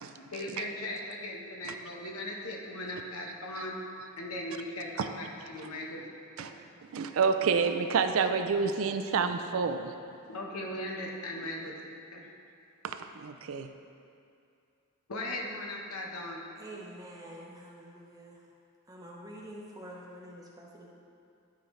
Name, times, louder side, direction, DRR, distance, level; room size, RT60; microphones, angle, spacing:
voice 1, 0.2-3.8 4.2-6.0 6.4-6.5 10.3-11.7 12.1-12.3 15.1-16.5, left 1 dB, 85° left, -1 dB, 1.1 m, -38 dB
voice 2, 6.9-9.9 12.8-13.7, right 5 dB, 65° right, 8 dB, 0.4 m, -28 dB
voice 3, 16.6-18.5 18.9-20.9, right 1 dB, 15° right, -3 dB, 0.9 m, -47 dB
11.5 x 5.0 x 3.2 m, 2.5 s
head